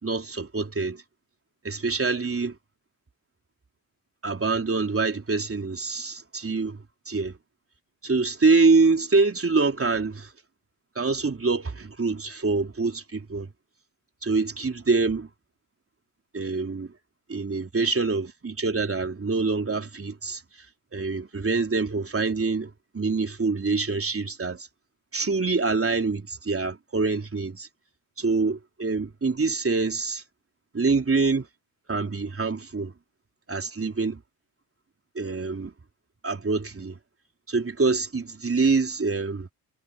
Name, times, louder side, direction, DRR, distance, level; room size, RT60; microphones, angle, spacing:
voice 1, 0.0-1.0 1.6-2.6 4.2-7.4 8.0-10.3 11.0-13.5 14.2-15.3 16.3-16.9 17.3-20.7 20.9-24.7 25.1-27.7 28.2-30.2 30.7-31.5 31.9-32.9 33.5-34.2 35.2-35.7 36.2-37.0 37.5-39.5, right 4 dB, 30° right, 3.6 m, -25 dB
hypercardioid pair, 50°, 45 cm